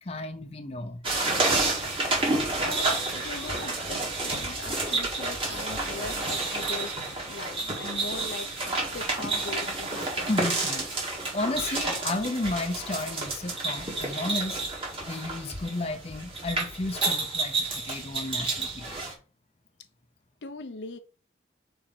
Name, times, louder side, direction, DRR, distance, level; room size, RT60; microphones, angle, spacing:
voice 1, 0.0-1.0 10.3-10.9 11.3-19.0, left 2 dB, 35° left, 0.6 m, -33 dB
sound 1, 1.0-19.1, right 2 dB, 30° right, 1.9 m, -30 dB
voice 2, 2.6-10.4 20.4-21.0, left 3 dB, 75° left, 0.7 m, -40 dB
4.8 x 4.5 x 5.9 m
head